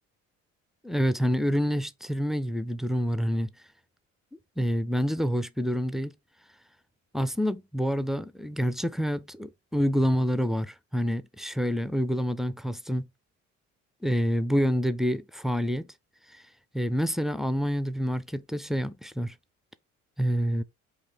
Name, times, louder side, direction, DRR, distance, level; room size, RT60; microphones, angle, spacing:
voice 1, 0.8-3.5 4.6-6.1 7.1-13.1 14.0-15.9 16.3-16.4 16.7-19.3 20.2-20.6, equal, ahead, 0.3 m, -27 dB
4.4 x 2.8 x 3.4 m
hypercardioid pair, 60°, 37 cm